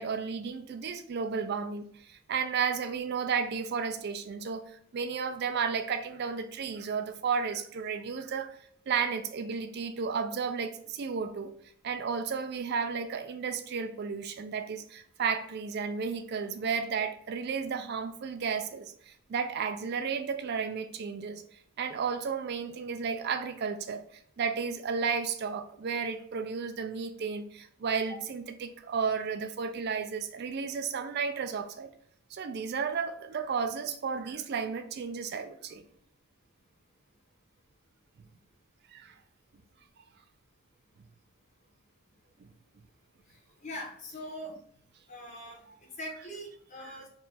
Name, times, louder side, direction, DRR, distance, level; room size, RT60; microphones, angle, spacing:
voice 1, 0.0-8.6 8.9-11.5 11.8-21.4 21.8-24.1 24.4-31.9 32.3-35.8 38.9-39.1 42.4-42.5 46.8-47.0, right 6 dB, 45° right, 0.3 m, -33 dB
voice 2, 43.6-44.6 45.1-45.6 46.0-47.1, equal, 30° left, 1.1 m, -41 dB
4.5 x 2.4 x 3.9 m
head